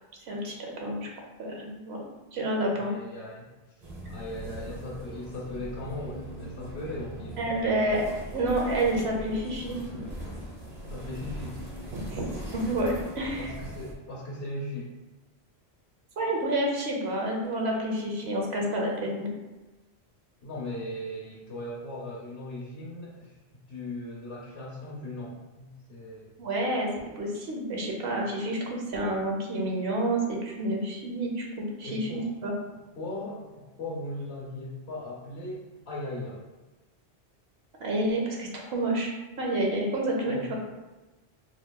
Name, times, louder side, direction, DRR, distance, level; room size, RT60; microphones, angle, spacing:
voice 1, 0.3-1.1 1.4-2.0 2.3-2.9 7.4-10.0 11.9-12.3 12.5-13.5 16.2-19.3 26.4-26.9 27.2-32.5 37.8-40.5, right 1 dB, 80° right, -1 dB, 1.1 m, -29 dB
voice 2, 2.7-3.5 4.1-7.4 9.7-9.8 10.8-11.6 13.4-14.9 20.4-23.4 23.7-26.3 31.8-32.3 33.0-36.4 40.2-40.5, left 1 dB, 75° left, -5 dB, 1.0 m, -38 dB
sound 1, 3.8-13.9, equal, 40° right, 0.9 m, -40 dB
4.4 x 2.9 x 2.2 m, 1.1 s
omnidirectional pair, 1.1 m